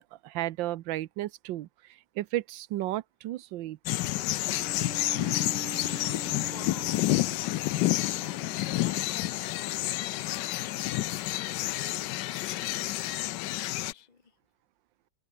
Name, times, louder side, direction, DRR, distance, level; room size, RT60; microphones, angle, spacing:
voice 1, 0.0-1.7 2.2-3.8, right 15 dB, 85° right, 1.4 m, -33 dB
sound 1, 3.9-13.9, left 16 dB, 75° left, 1.2 m, -29 dB
Bowed string instrument, 4.5-9.2, right 4 dB, 40° right, 2.3 m, -45 dB
voice 2, 6.1-14.4, left 7 dB, 25° left, 1.2 m, -51 dB
open air
omnidirectional pair, 2.0 m